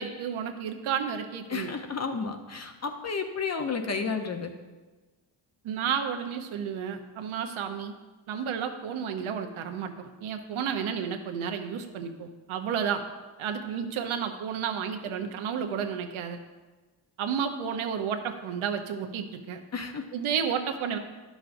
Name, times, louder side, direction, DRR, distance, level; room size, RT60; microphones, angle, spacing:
voice 1, 0.0-1.7 5.6-7.9 8.3-13.0 13.4-16.4 17.2-19.6 20.1-21.0, right 7 dB, 80° right, 5 dB, 0.8 m, -31 dB
voice 2, 1.5-4.5 19.7-20.0, left 5 dB, 35° left, 6 dB, 0.7 m, -32 dB
10.5 x 6.1 x 2.6 m, 1.3 s
cardioid pair, 110°, 48 cm